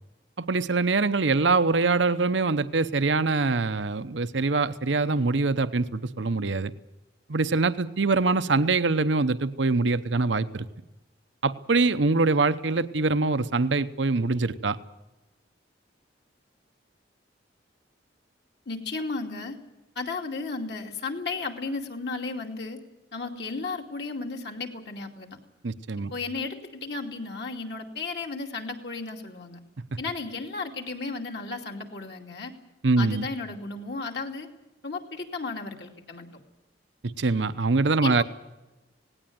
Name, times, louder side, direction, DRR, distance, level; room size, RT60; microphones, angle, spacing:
voice 1, 0.5-6.7 7.3-10.7 11.4-14.8 25.6-26.1 32.8-33.3 37.2-38.2, right 3 dB, 75° right, 12 dB, 0.8 m, -24 dB
voice 2, 18.7-19.6 20.0-22.8 23.1-25.4 26.0-29.6 30.0-32.5 33.0-34.5 34.8-36.3 38.0-38.2, left 3 dB, 60° left, 2 dB, 2.6 m, -34 dB
18.0 x 18.0 x 9.4 m, 1.0 s
head